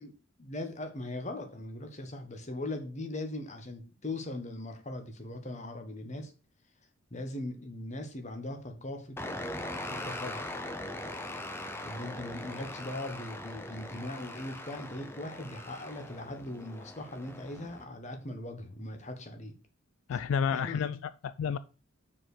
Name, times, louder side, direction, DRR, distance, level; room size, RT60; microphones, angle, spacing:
voice 1, 0.4-6.3 7.1-9.2 9.9-10.5 11.8-19.5 20.5-20.9, left 1 dB, 35° left, 1.2 m, -40 dB
sound 1, 9.2-17.8, left 1 dB, 10° left, 0.8 m, -41 dB
voice 2, 20.1-21.6, left 7 dB, 70° left, 0.3 m, -31 dB
6.0 x 4.8 x 6.3 m
head